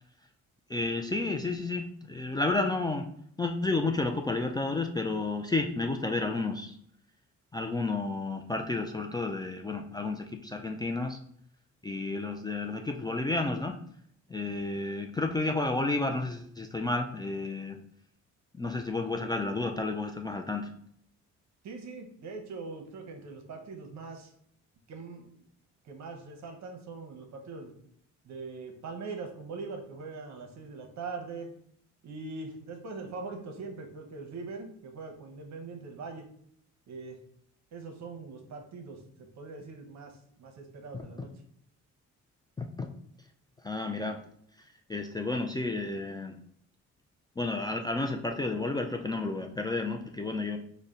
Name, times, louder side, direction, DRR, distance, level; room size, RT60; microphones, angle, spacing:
voice 1, 0.7-3.1 3.4-6.8 7.5-11.2 11.8-13.7 14.3-17.8 18.5-20.7 40.9-41.3 42.6-42.9 43.6-44.2 44.9-46.4 47.4-50.6, left 3 dB, 15° left, 3 dB, 0.3 m, -31 dB
voice 2, 21.6-24.3 24.9-25.3 25.8-27.8 28.2-31.5 32.0-36.2 36.9-37.2 37.7-41.3, right 4 dB, 65° right, 4 dB, 0.8 m, -42 dB
4.0 x 2.1 x 3.6 m, 0.65 s
cardioid pair, 90°, 30 cm